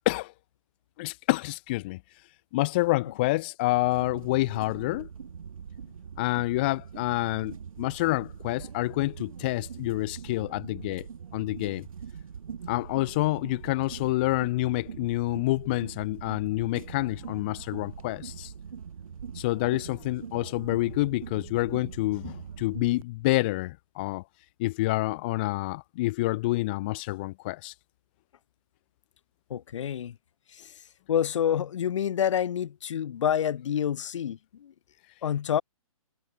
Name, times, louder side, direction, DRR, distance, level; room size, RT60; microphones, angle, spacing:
voice 1, 1.0-2.0 2.5-5.1 6.2-11.1 11.3-11.9 12.7-18.5 19.3-24.2 24.6-27.7, left 20 dB, 15° left, 0.3 m, -28 dB
sound 1, 3.7-23.0, right 7 dB, 65° right, 7.3 m, -42 dB
voice 2, 29.5-30.2 30.5-30.8 31.1-34.7 35.2-35.6, left 9 dB, 55° left, 2.1 m, -28 dB
hypercardioid pair, 150°, 19 cm